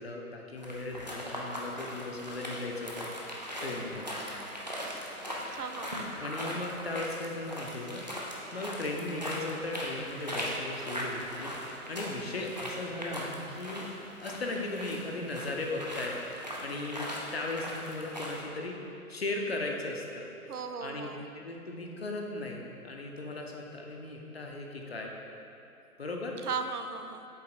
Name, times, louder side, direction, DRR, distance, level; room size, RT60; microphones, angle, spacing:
voice 1, 0.0-3.1 3.6-4.1 6.2-13.9 14.2-16.1 16.6-18.8 19.1-20.3 20.8-21.1 21.3-25.1 26.0-26.4, left 2 dB, 45° left, 0 dB, 0.7 m, -37 dB
sound 1, 0.6-18.4, equal, 30° right, 0.4 m, -39 dB
voice 2, 5.5-5.9 20.5-21.2 26.4-27.3, right 5 dB, 80° right, 8 dB, 0.6 m, -36 dB
7.5 x 3.5 x 4.2 m, 2.8 s
figure-of-eight pair, 145°, 45 cm